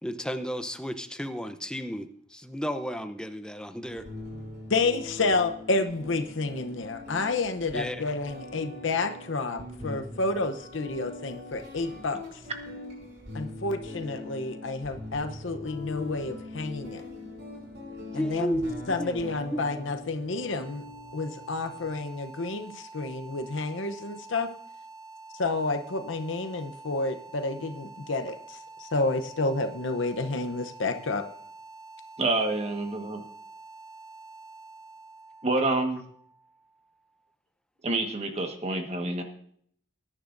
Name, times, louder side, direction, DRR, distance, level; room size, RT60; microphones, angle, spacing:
voice 1, 0.0-4.0 7.7-8.0 18.1-19.8, equal, 5° left, 9 dB, 0.7 m, -33 dB
sound 1, 3.8-22.0, left 2 dB, 60° right, 6.4 m, -42 dB
voice 2, 4.7-12.2 13.3-17.0 18.1-18.6 18.9-20.8 21.1-24.5 25.4-31.2, left 3 dB, 75° left, 7 dB, 0.8 m, -30 dB
sound 2, 20.3-37.2, right 3 dB, 20° right, 1.2 m, -48 dB
voice 3, 32.2-33.2 35.4-36.0 37.8-39.2, right 2 dB, 35° right, 4 dB, 1.4 m, -27 dB
20.0 x 10.0 x 2.6 m, 0.64 s
head